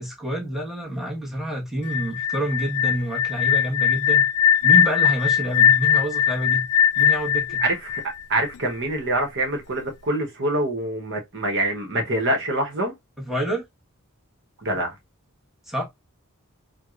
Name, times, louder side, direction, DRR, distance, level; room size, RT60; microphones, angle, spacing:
voice 1, 0.0-4.2 4.6-6.6 7.0-7.6 13.3-13.6 15.7-15.8, right 1 dB, ahead, 1.1 m, -27 dB
sound 1, 1.8-8.7, left 8 dB, 90° left, 0.3 m, -20 dB
voice 2, 7.6-8.0 8.3-12.9 14.6-14.9, right 1 dB, 60° right, 0.9 m, -25 dB
4.6 x 2.1 x 2.4 m
head